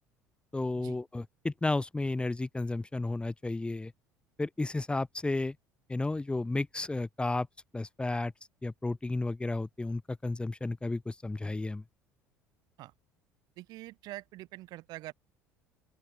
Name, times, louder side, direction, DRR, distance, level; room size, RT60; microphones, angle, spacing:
voice 1, 0.5-3.9 4.4-5.5 5.9-7.5 7.7-8.3 8.6-11.8, left 2 dB, 10° left, 1.8 m, -32 dB
voice 2, 13.6-15.1, right 18 dB, 50° right, 2.8 m, -45 dB
open air
figure-of-eight pair, 60°, 8 cm